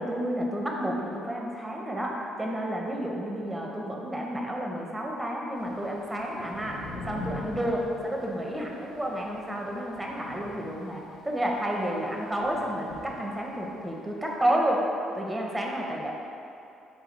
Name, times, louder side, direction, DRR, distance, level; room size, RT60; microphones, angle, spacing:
voice 1, 0.0-14.9 15.1-16.1, equal, 10° right, -1 dB, 0.7 m, -31 dB
Thunder / Rain, 5.6-13.9, left 1 dB, 80° left, 0.8 m, -43 dB
3.8 x 2.3 x 4.4 m, 2.7 s
hypercardioid pair, 60°, 0 cm